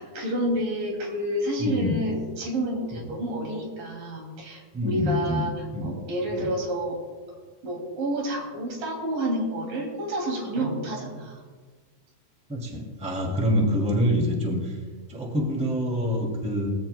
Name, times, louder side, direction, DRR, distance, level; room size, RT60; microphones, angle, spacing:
voice 1, 0.0-5.5 5.8-7.0 7.6-11.4, right 1 dB, 55° right, 0 dB, 4.1 m, -29 dB
voice 2, 1.6-2.0 4.7-5.4 5.7-5.9 12.5-14.8 15.1-16.7, equal, 5° right, -1 dB, 1.2 m, -26 dB
19.0 x 15.0 x 2.3 m, 1.4 s
omnidirectional pair, 4.8 m